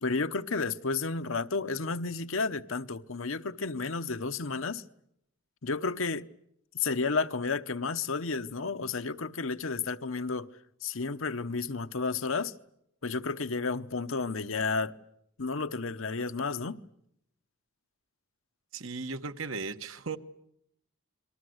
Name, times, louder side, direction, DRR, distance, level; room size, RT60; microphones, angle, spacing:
voice 1, 0.0-4.8 5.6-6.3 6.7-10.5 10.8-12.5 13.0-14.9 15.4-16.8, left 4 dB, 75° left, 1.0 m, -32 dB
voice 2, 18.7-20.2, right 4 dB, 75° right, 1.4 m, -36 dB
30.0 x 23.0 x 8.0 m
head